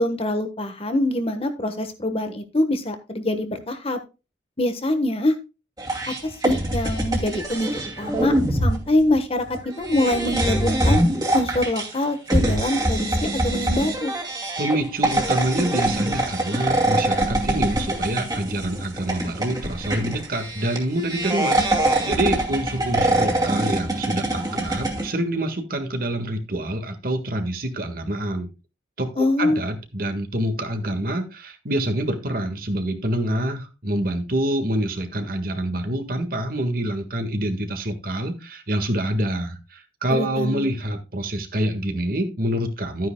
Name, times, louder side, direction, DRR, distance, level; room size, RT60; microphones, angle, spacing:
voice 1, 0.0-4.0 4.6-5.3 6.2-7.7 8.0-8.3 8.6-11.0 11.3-14.1 29.2-29.6 40.1-40.7, left 1 dB, 30° left, 8 dB, 1.3 m, -24 dB
sound 1, 5.8-25.1, right 1 dB, 20° right, 2.4 m, -24 dB
voice 2, 14.6-28.5 29.0-43.1, right 1 dB, 50° right, 6 dB, 1.7 m, -26 dB
12.5 x 9.4 x 2.2 m, 0.29 s
head